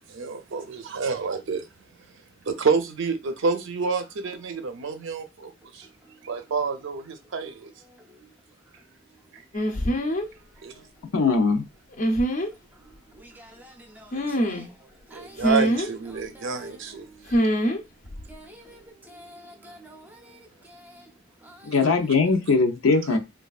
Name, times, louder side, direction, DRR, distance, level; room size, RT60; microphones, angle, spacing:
voice 1, 0.1-1.7 2.5-5.9 6.2-7.7 9.3-9.4 10.6-10.9 11.2-11.3 15.1-17.4 21.8-21.9 23.0-23.2, right 5 dB, 65° right, 0.5 m, -29 dB
sound 1, 9.5-10.3 12.0-12.5 14.1-14.7 15.4-15.9 17.3-17.8 18.1-18.3, equal, 40° left, 0.5 m, -24 dB
voice 2, 11.1-11.6 21.6-23.2, left 4 dB, 85° left, 0.6 m, -20 dB
voice 3, 13.2-14.1 14.4-14.6 15.1-15.4 16.4-16.5 18.3-18.8 19.1-20.4 20.7-21.0 21.4-21.7, equal, 10° right, 0.5 m, -48 dB
3.2 x 2.3 x 2.3 m
head